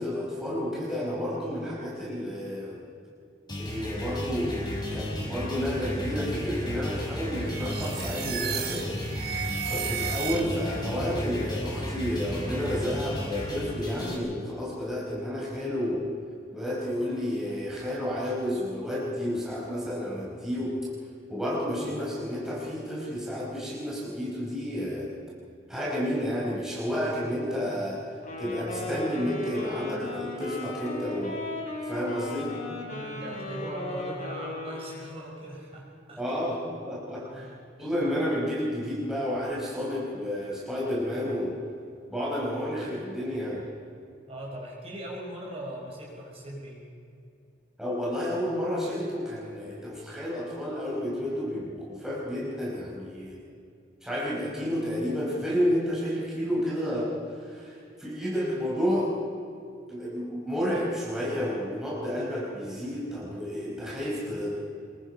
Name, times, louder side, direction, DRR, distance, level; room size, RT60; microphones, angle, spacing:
voice 1, 0.0-2.8 3.6-8.9 9.7-16.1 16.5-20.8 21.3-25.1 25.7-28.0 28.4-31.4 31.8-32.6 36.2-37.5 37.8-41.6 42.1-43.6 47.8-53.4 54.0-57.7 58.0-59.2 59.9-64.6, equal, 5° right, -6 dB, 4.8 m, -31 dB
sound 1, 3.5-14.1, equal, 20° left, 5.1 m, -34 dB
sound 2, 7.5-10.8, right 8 dB, 55° right, 1.3 m, -34 dB
Wind instrument woodwind instrument, 28.2-35.3, left 1 dB, 40° left, 4.7 m, -37 dB
voice 2, 32.9-36.2 37.2-37.5 37.8-38.1 44.3-46.8, right 1 dB, 30° right, -2 dB, 5.4 m, -40 dB
26.0 x 22.0 x 5.6 m, 2.5 s
head